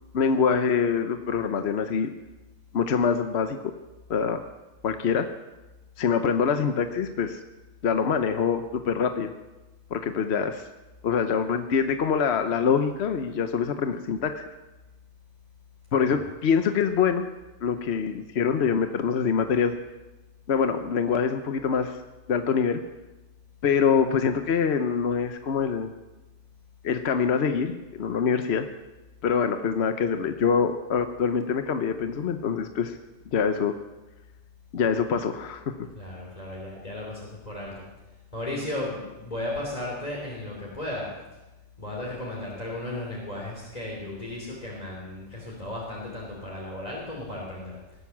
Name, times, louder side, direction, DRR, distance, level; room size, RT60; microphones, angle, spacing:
voice 1, 0.1-2.1 2.7-3.6 4.1-4.4 4.8-5.3 6.0-7.4 7.8-9.3 9.9-10.7 11.0-14.4 15.9-17.2 17.6-19.7 20.5-22.0 22.3-22.8 23.6-25.9 26.8-28.7 29.2-33.0 33.3-33.7 34.7-35.7, left 6 dB, 65° left, 8 dB, 1.1 m, -25 dB
voice 2, 35.9-37.9 38.3-41.2 41.8-47.8, left 1 dB, 35° left, -4 dB, 3.4 m, -35 dB
18.0 x 9.5 x 7.2 m, 1.1 s
omnidirectional pair, 1.2 m